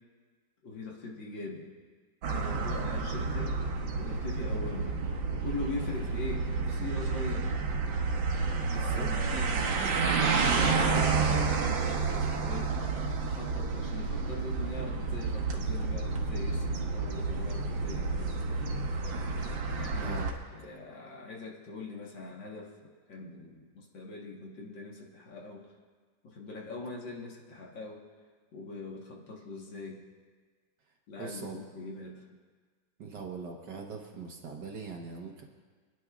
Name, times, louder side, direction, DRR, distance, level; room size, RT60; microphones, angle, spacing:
voice 1, 0.6-1.7 2.3-3.6 4.0-5.0 5.3-7.5 8.9-12.8 13.2-18.3 19.7-25.7 26.2-28.0 28.5-30.0 31.1-32.3, left 3 dB, 80° left, -2 dB, 2.2 m, -42 dB
sound 1, 2.2-20.3, right 4 dB, 85° right, 1.8 m, -30 dB
voice 2, 2.3-2.7 8.7-9.1 20.0-20.4 31.2-31.6 33.0-35.4, right 5 dB, 70° right, 1 dB, 1.6 m, -41 dB
26.5 x 10.0 x 2.4 m, 1.5 s
omnidirectional pair, 2.0 m